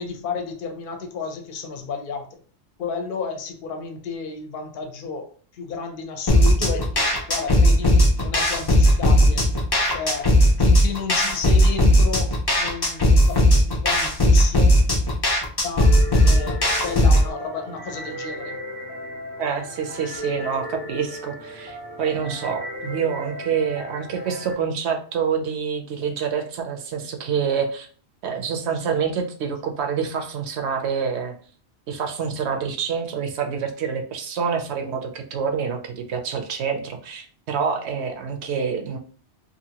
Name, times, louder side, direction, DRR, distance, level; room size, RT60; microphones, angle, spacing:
voice 1, 0.0-2.3 2.8-5.3 5.5-9.4 9.9-12.3 12.6-14.8 15.6-15.9 16.2-18.6, left 5 dB, 55° left, 5 dB, 0.7 m, -32 dB
sound 1, 6.3-17.3, equal, 40° left, 0.3 m, -17 dB
sound 2, 15.8-24.5, equal, 25° left, 0.7 m, -36 dB
voice 2, 19.4-27.9 28.2-31.3 31.9-39.0, right 6 dB, 75° right, 5 dB, 0.8 m, -27 dB
2.8 x 2.5 x 2.8 m, 0.44 s
omnidirectional pair, 1.2 m